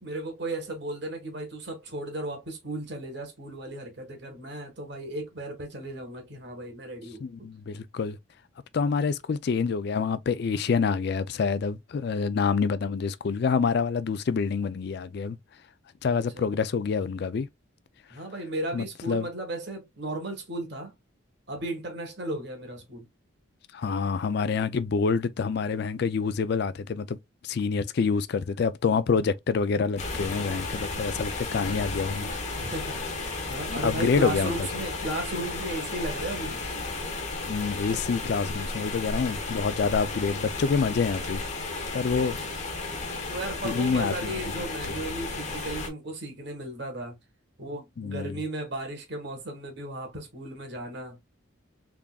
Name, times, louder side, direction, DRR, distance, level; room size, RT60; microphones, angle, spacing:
voice 1, 0.0-7.2 16.1-16.5 18.1-20.9 21.5-23.1 32.5-33.0 33.4-36.6 42.0-42.4 43.2-47.2 47.6-51.2, right 1 dB, 55° right, 1.5 m, -35 dB
voice 2, 7.2-8.2 8.7-15.4 16.0-17.5 18.7-19.3 23.7-27.2 27.4-32.4 33.7-34.5 37.5-41.4 41.9-42.4 43.6-44.6 48.0-48.4, left 5 dB, 50° left, 0.4 m, -27 dB
sound 1, 30.0-45.9, left 3 dB, 35° left, 1.0 m, -34 dB
3.7 x 3.5 x 2.3 m
head